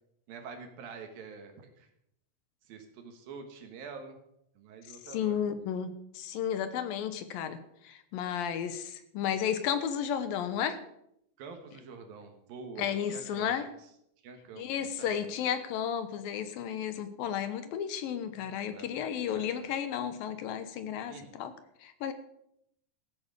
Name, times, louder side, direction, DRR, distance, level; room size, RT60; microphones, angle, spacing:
voice 1, 0.3-1.9 2.6-4.2 4.6-5.4 11.4-13.5 14.2-15.3 18.7-19.7 21.1-21.3, right 5 dB, 75° right, 5 dB, 3.3 m, -46 dB
voice 2, 5.1-7.6 7.8-10.8 12.8-13.7 14.6-21.5 21.8-22.1, left 8 dB, 75° left, 11 dB, 2.7 m, -33 dB
14.5 x 8.8 x 6.8 m, 0.76 s
omnidirectional pair, 4.2 m